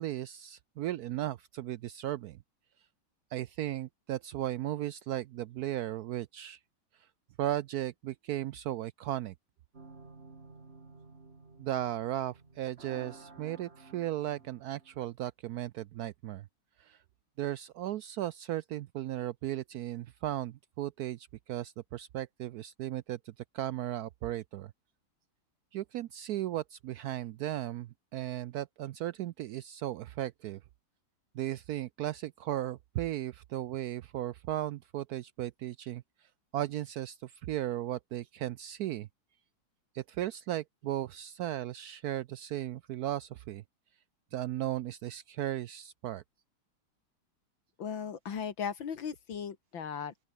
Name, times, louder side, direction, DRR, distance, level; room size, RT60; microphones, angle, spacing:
voice 1, 0.0-2.4 3.3-6.6 7.4-9.3 11.6-16.4 16.8-17.0 17.4-24.7 25.7-30.6 31.3-36.0 36.5-39.1 39.9-43.6 44.3-46.2, right 13 dB, 90° right, 0.8 m, -36 dB
sound 1, 9.7-15.1, right 3 dB, 30° right, 2.7 m, -53 dB
voice 2, 47.8-50.3, left 7 dB, 70° left, 2.7 m, -37 dB
open air
omnidirectional pair, 2.2 m